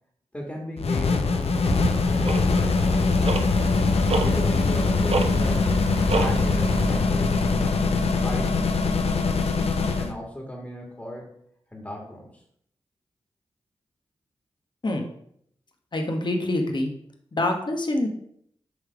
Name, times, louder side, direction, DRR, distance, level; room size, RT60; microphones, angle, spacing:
voice 1, 0.3-3.0 4.1-5.7 6.1-9.0 10.0-11.4 11.7-12.4, equal, 15° left, -1 dB, 1.9 m, -36 dB
sound 1, 0.8-10.1, left 4 dB, 65° left, 0.7 m, -22 dB
Tick-tock, 1.4-7.0, right 3 dB, 60° right, 0.8 m, -30 dB
voice 2, 15.9-16.9 17.3-18.1, left 1 dB, 45° left, 2 dB, 1.2 m, -25 dB
7.0 x 3.2 x 4.7 m, 0.68 s
cardioid pair, 45°, 11 cm